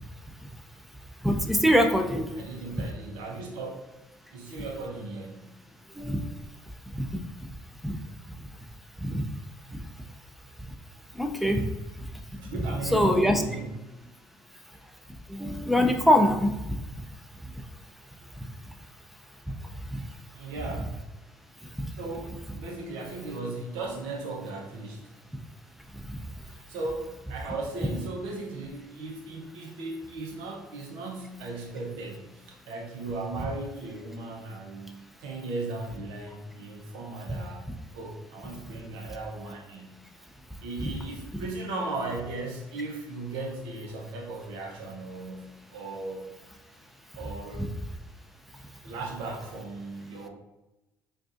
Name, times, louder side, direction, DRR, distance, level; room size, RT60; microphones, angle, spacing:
voice 1, 1.2-2.4 6.0-6.2 6.9-7.0 7.8-7.9 9.0-9.2 11.2-11.6 12.9-13.4 15.3-16.8 19.9-20.0 40.8-40.9 47.6-47.7, equal, ahead, 4 dB, 0.5 m, -23 dB
voice 2, 2.3-3.7 4.3-5.5 12.4-13.8 20.3-20.9 22.0-25.1 26.4-34.9 35.2-37.7 37.9-40.0 40.6-46.3 47.1-47.7 48.8-50.3, right 2 dB, 80° right, 1 dB, 0.8 m, -37 dB
4.7 x 2.6 x 2.6 m, 0.98 s
supercardioid pair, 70°, 8 cm